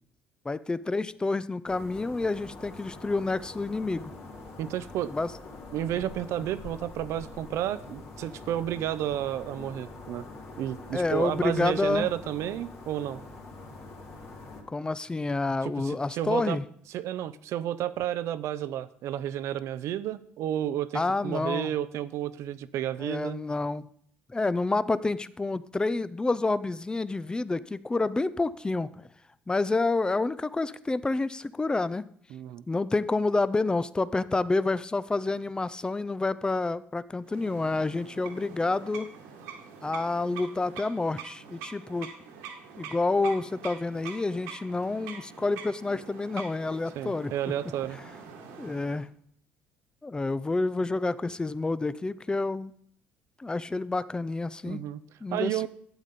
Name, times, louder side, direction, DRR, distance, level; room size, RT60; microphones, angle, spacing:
voice 1, 0.4-4.1 5.1-5.3 10.9-12.1 14.7-16.6 20.9-21.7 23.0-23.8 24.3-29.0 29.5-32.0 32.7-39.1 39.8-42.1 42.8-47.3 48.6-49.1 50.0-52.8 53.4-54.8 55.2-55.7, left 3 dB, 15° left, 17 dB, 0.5 m, -28 dB
sound 1, 1.7-14.6, left 3 dB, 55° left, 2.9 m, -45 dB
voice 2, 4.6-5.1 5.7-10.3 10.6-13.2 15.6-16.6 16.9-23.4 32.3-32.7 47.0-48.0 54.6-55.0 55.3-55.7, right 11 dB, 70° right, 15 dB, 0.6 m, -31 dB
sound 2, 37.2-49.1, right 6 dB, 85° right, 1.8 m, -45 dB
12.0 x 8.4 x 4.1 m, 0.65 s
supercardioid pair, 70°, 5 cm